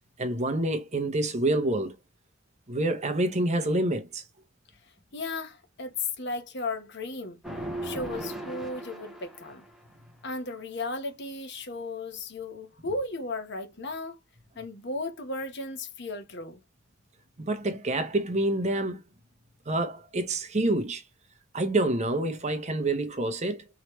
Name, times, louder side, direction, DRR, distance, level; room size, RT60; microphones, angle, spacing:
voice 1, 0.2-2.0 2.7-4.2 17.4-19.0 19.7-21.0 21.5-23.6, right 2 dB, 35° right, 0.9 m, -27 dB
voice 2, 5.1-7.4 7.8-9.6 10.2-14.2 14.6-16.6, left 3 dB, 60° left, 1.1 m, -35 dB
sound 1, 7.4-9.8, right 1 dB, ahead, 0.9 m, -37 dB
4.8 x 3.1 x 3.1 m
head